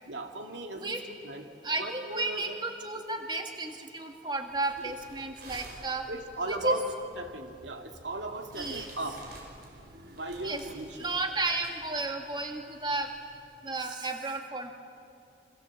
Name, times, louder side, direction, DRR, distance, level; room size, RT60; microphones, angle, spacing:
voice 1, 0.0-1.5 1.8-2.6 4.8-4.9 6.1-11.1, right 2 dB, 85° right, 4 dB, 2.4 m, -37 dB
voice 2, 1.6-6.1 6.5-6.8 8.6-8.9 10.4-10.6 10.9-13.1 13.6-14.7, right 2 dB, 25° right, 4 dB, 1.7 m, -33 dB
sound 1, 4.5-13.4, right 2 dB, 55° right, 5.1 m, -52 dB
29.0 x 24.0 x 7.6 m, 2.5 s
head